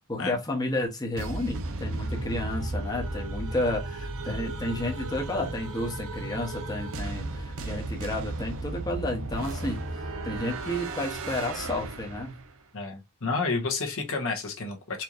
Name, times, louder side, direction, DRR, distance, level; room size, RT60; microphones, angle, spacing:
voice 1, 0.1-12.4, left 1 dB, 15° left, 0.9 m, -31 dB
sound 1, 1.2-12.6, right 2 dB, 65° right, 0.7 m, -35 dB
voice 2, 12.7-15.0, left 4 dB, 65° left, 1.1 m, -30 dB
4.4 x 2.9 x 2.4 m
head